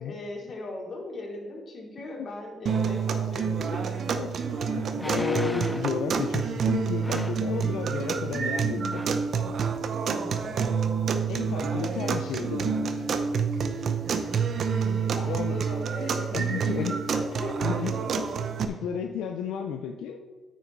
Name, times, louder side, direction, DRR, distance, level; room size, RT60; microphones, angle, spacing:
voice 1, 0.0-4.2 9.8-10.6 14.9-18.2 20.0-20.1, left 2 dB, 50° left, -2 dB, 2.9 m, -39 dB
sound 1, 2.7-18.7, right 6 dB, 55° right, 0.7 m, -28 dB
sound 2, 3.9-4.0 4.9-6.0 7.0-7.5 8.4-8.6 8.9-9.2 9.8-9.9, left 1 dB, 5° left, 0.8 m, -36 dB
voice 2, 4.2-9.1 11.3-13.1 15.2-15.6 16.3-17.0 17.6-17.9 18.7-20.2, left 8 dB, 85° left, 5 dB, 0.5 m, -33 dB
9.1 x 6.2 x 4.6 m, 1.4 s
cardioid pair, 90°, 0 cm